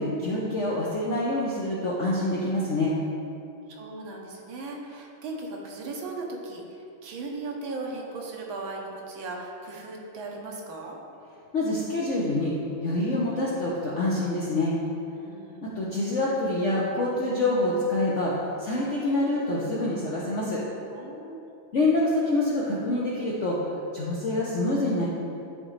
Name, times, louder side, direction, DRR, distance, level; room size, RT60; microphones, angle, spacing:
voice 1, 0.0-3.0 11.5-12.5 12.8-14.8 15.6-20.6 21.7-23.6 23.9-25.1, left 2 dB, 65° left, -6 dB, 0.7 m, -26 dB
voice 2, 3.7-11.0 15.2-15.7 20.9-21.5, right 3 dB, 80° right, 0 dB, 1.7 m, -37 dB
11.0 x 3.8 x 3.1 m, 2.7 s
omnidirectional pair, 2.2 m